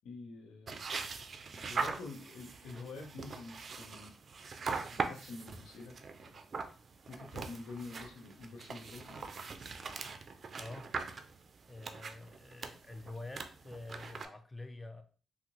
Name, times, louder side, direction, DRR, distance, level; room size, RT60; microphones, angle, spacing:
voice 1, 0.0-0.8 1.7-4.1 5.0-5.9 6.2-6.4 7.1-9.2, left 3 dB, 85° left, 0.7 m, -47 dB
sound 1, 0.7-14.3, right 4 dB, 50° right, 0.4 m, -42 dB
voice 2, 10.5-10.9 11.7-15.0, left 2 dB, 15° left, 0.5 m, -47 dB
3.5 x 2.1 x 3.0 m
supercardioid pair, 65°, 0 cm